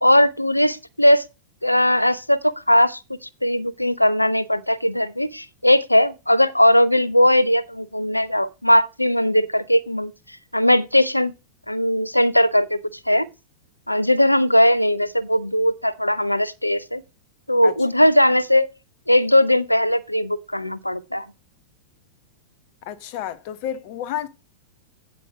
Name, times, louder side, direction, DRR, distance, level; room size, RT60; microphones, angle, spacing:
voice 1, 0.0-1.2 1.6-10.1 10.5-11.3 11.7-12.8 13.1-13.3 13.9-17.0 17.5-18.7 19.1-21.3, left 1 dB, 85° left, 0.6 m, -19 dB
voice 2, 22.9-24.3, left 10 dB, 45° left, 1.0 m, -30 dB
8.6 x 7.7 x 4.4 m
figure-of-eight pair, 95°, 0 cm